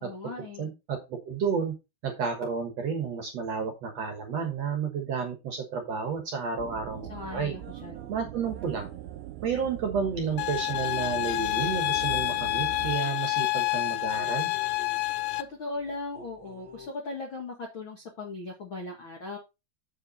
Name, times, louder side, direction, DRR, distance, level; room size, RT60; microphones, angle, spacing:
voice 1, 0.0-0.7 7.1-8.1 15.3-19.4, left 3 dB, 55° left, 1 dB, 1.4 m, -38 dB
voice 2, 0.6-1.7 2.0-7.5 8.1-8.9 9.4-14.5, right 6 dB, 60° right, 4 dB, 1.9 m, -31 dB
sound 1, 6.6-13.0, right 15 dB, 80° right, 2.5 m, -41 dB
sound 2, 6.9-16.9, equal, 25° right, 2.3 m, -52 dB
sound 3, 10.4-15.4, left 19 dB, 80° left, 2.2 m, -28 dB
8.0 x 6.8 x 4.1 m, 0.26 s
omnidirectional pair, 4.6 m